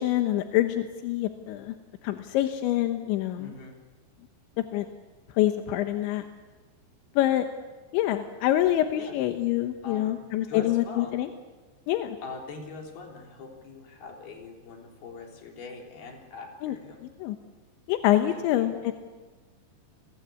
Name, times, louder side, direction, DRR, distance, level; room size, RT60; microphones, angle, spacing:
voice 1, 0.0-1.8 2.0-3.5 4.7-4.9 5.4-6.2 7.2-7.5 7.9-11.3 11.9-12.2 16.6-16.8 17.2-17.4 17.9-18.9, left 13 dB, 85° left, 7 dB, 3.4 m, -26 dB
voice 2, 3.4-3.8 9.0-9.2 9.8-10.2 10.5-11.2 12.2-17.1 18.3-18.7, left 4 dB, 60° left, 2 dB, 5.3 m, -42 dB
30.0 x 22.0 x 8.4 m, 1.3 s
omnidirectional pair, 5.2 m